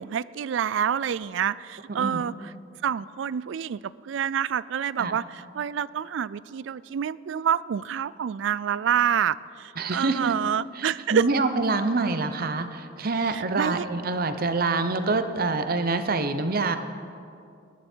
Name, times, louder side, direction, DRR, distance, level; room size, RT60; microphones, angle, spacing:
voice 1, 0.0-2.5 2.8-11.3 13.2-13.9, right 8 dB, 70° right, 19 dB, 0.3 m, -27 dB
voice 2, 9.8-10.3 10.8-16.8, right 3 dB, 50° right, 9 dB, 0.8 m, -26 dB
19.0 x 11.5 x 4.5 m, 2.5 s
head